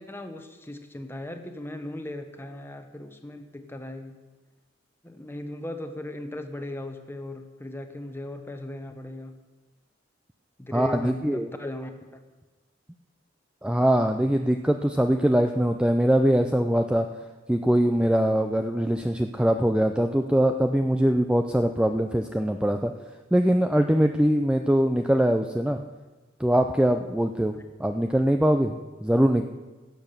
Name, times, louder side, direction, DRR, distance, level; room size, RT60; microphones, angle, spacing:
voice 1, 0.0-4.3 5.0-9.4 10.6-12.2 27.5-27.6, left 1 dB, 10° left, 6 dB, 1.0 m, -38 dB
voice 2, 10.7-11.5 13.6-17.1 17.5-22.9 23.3-25.8 26.4-29.4, right 1 dB, 5° right, 5 dB, 0.4 m, -22 dB
16.0 x 7.1 x 6.7 m, 1.2 s
head